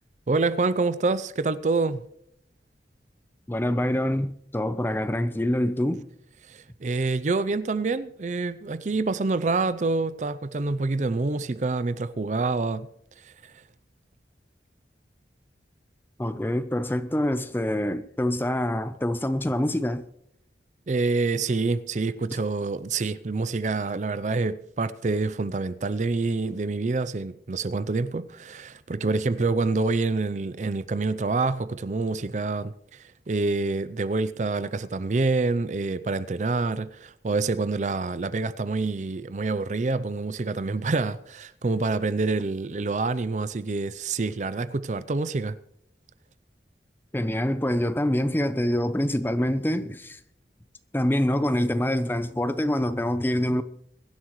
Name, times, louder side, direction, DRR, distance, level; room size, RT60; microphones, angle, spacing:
voice 1, 0.3-2.0 6.5-12.9 13.2-13.5 20.9-45.6, right 3 dB, 40° right, 0.5 m, -27 dB
voice 2, 3.5-6.1 16.2-20.1 47.1-50.2 50.9-53.6, left 1 dB, 10° left, 0.6 m, -25 dB
22.5 x 11.5 x 3.1 m
head